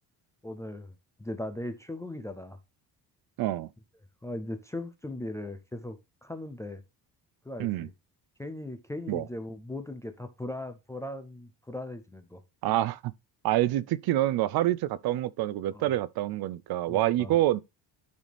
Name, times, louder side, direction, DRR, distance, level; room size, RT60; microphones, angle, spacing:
voice 1, 0.4-0.9 1.2-2.6 4.2-6.8 7.5-7.9 8.4-12.4 15.7-15.9 16.9-17.4, left 1 dB, 10° left, 0.3 m, -38 dB
voice 2, 3.4-3.7 7.6-7.9 9.1-9.3 12.6-13.1 13.4-17.6, right 14 dB, 65° right, 0.5 m, -27 dB
12.0 x 4.1 x 3.3 m
cardioid pair, 180°, 40 cm